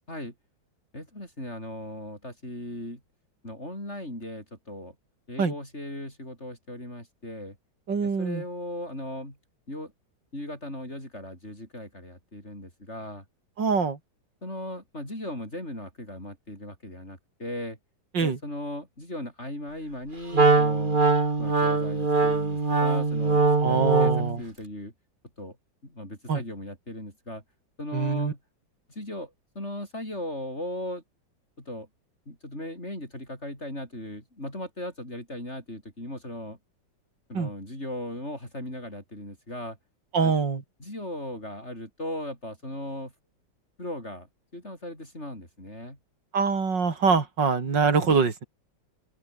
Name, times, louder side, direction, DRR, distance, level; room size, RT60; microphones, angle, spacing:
voice 1, 0.9-3.0 3.4-4.9 5.3-7.6 8.0-9.4 9.7-9.9 10.3-13.2 14.4-17.8 18.2-21.0 21.4-24.9 25.4-25.6 25.8-27.4 27.8-28.4 28.9-31.0 31.6-31.9 32.3-36.6 37.3-39.8 40.2-40.3 40.8-43.1 43.8-46.0, left 1 dB, 35° left, 8.5 m, -37 dB
voice 2, 7.9-8.4 13.6-14.0 18.1-18.4 23.6-24.4 26.3-26.4 27.9-28.3 37.3-37.5 40.1-40.6 46.3-48.4, right 5 dB, 65° right, 3.4 m, -24 dB
Wind instrument woodwind instrument, 20.3-24.4, right 3 dB, 25° right, 1.9 m, -22 dB
open air
omnidirectional pair, 2.1 m